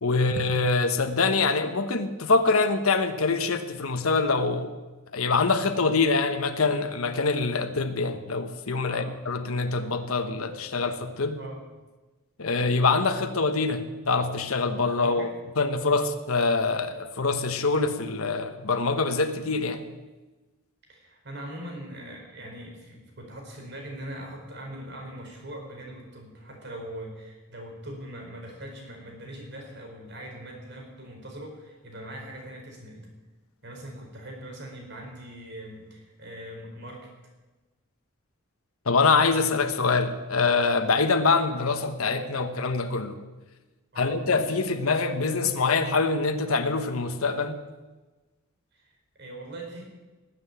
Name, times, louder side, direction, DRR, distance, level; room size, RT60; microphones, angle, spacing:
voice 1, 0.0-4.7 5.1-11.4 12.4-15.3 15.6-19.9 38.9-43.2 44.0-47.6, left 4 dB, 85° left, 7 dB, 1.2 m, -25 dB
voice 2, 8.9-9.2 11.4-11.6 15.0-15.3 15.8-16.0 20.9-33.1 33.6-37.1 43.9-44.1 48.7-48.9 49.2-49.8, right 1 dB, 55° right, 1 dB, 4.5 m, -41 dB
19.0 x 7.9 x 8.0 m, 1.2 s
head